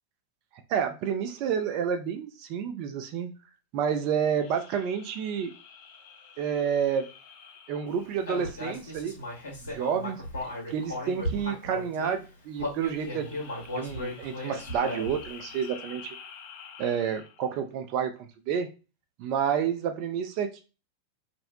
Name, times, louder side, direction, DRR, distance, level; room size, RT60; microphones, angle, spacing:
voice 1, 0.7-3.3 3.7-5.5 6.4-7.1 7.7-9.2 9.5-13.4 13.7-16.2 16.8-18.7 19.2-20.6, right 7 dB, 45° right, 6 dB, 0.4 m, -30 dB
monster exhaling, 4.2-9.0 12.8-17.6, left 7 dB, 45° left, 0.5 m, -49 dB
Human voice, 8.3-12.1 12.6-15.3, left 1 dB, 70° left, 0.8 m, -36 dB
2.5 x 2.0 x 2.5 m, 0.32 s
figure-of-eight pair, 90°, 0 cm